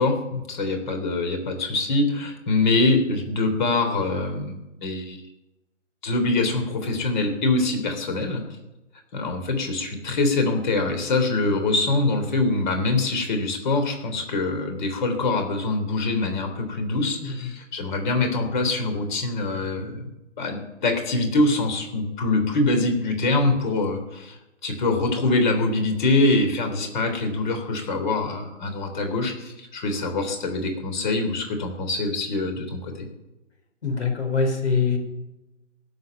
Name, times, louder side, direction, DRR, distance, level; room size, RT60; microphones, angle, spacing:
voice 1, 0.0-5.2 6.0-8.4 9.1-20.1 20.4-24.4 24.6-33.1, left 2 dB, 40° left, 5 dB, 3.4 m, -24 dB
voice 2, 17.2-17.5 33.8-35.0, left 5 dB, 65° left, 5 dB, 4.5 m, -24 dB
16.5 x 7.5 x 9.1 m, 0.97 s
figure-of-eight pair, 145°, 37 cm